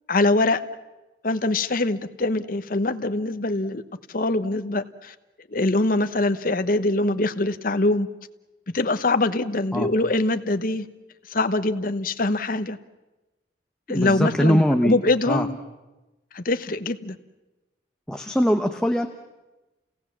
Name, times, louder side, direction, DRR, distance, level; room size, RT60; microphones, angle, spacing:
voice 1, 0.1-0.6 1.2-3.8 4.1-5.1 5.5-8.1 8.7-10.8 11.3-12.8 13.9-15.6 16.3-17.2, left 2 dB, 50° left, 11 dB, 1.0 m, -23 dB
voice 2, 13.9-15.0 15.3-15.5 18.1-19.1, equal, 5° left, 4 dB, 0.9 m, -21 dB
29.5 x 18.0 x 7.3 m, 1.1 s
head